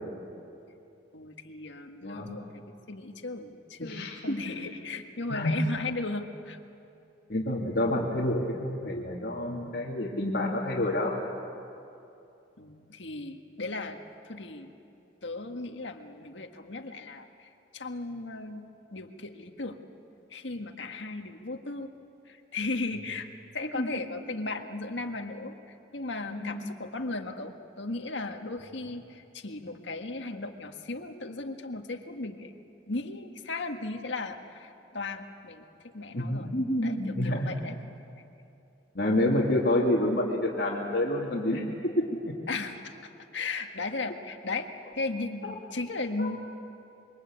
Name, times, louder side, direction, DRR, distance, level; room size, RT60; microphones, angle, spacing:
voice 1, 1.1-2.6 2.9-6.6 12.6-14.7 15.2-18.7 18.9-19.8 20.3-21.9 22.3-32.5 32.9-36.5 36.8-37.8 42.5-46.4, left 3 dB, 85° left, 5 dB, 1.7 m, -36 dB
voice 2, 3.8-4.4 5.3-5.5 7.3-11.2 23.8-23.9 26.3-26.6 36.1-37.5 38.9-41.6 42.0-42.3 45.4-45.5 46.2-46.3, left 1 dB, 55° left, -6 dB, 2.8 m, -28 dB
27.0 x 23.0 x 8.8 m, 2.7 s
head